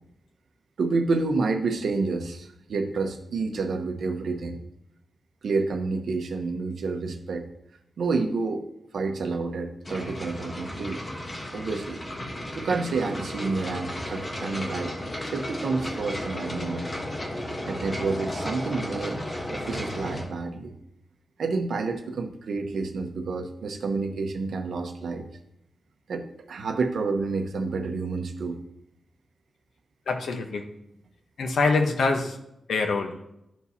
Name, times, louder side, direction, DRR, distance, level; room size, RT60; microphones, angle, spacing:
voice 1, 0.8-4.6 5.4-7.4 8.0-8.6 8.9-11.0 11.5-12.0 12.6-15.0 15.3-16.9 17.7-19.2 19.5-20.7 21.4-25.3 26.1-28.6, right 4 dB, 70° right, 4 dB, 0.9 m, -29 dB
sound 1, 9.8-20.2, left 1 dB, 25° left, 1.1 m, -34 dB
voice 2, 30.1-30.6 31.4-32.3 32.7-33.1, left 3 dB, 85° left, 4 dB, 0.9 m, -24 dB
12.5 x 4.6 x 2.8 m, 0.80 s
wide cardioid pair, 160°, 0 cm